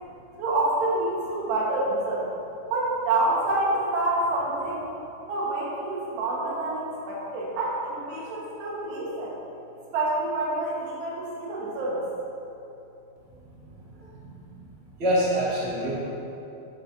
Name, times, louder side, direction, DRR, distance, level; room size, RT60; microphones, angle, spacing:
voice 1, 0.4-2.3 2.7-4.9 5.3-9.3 9.9-12.0, right 2 dB, 70° right, -5 dB, 3.4 m, -27 dB
voice 2, 13.4-14.7 15.0-15.9, equal, 85° right, -8 dB, 0.5 m, -28 dB
10.5 x 9.3 x 2.7 m, 2.9 s
omnidirectional pair, 5.3 m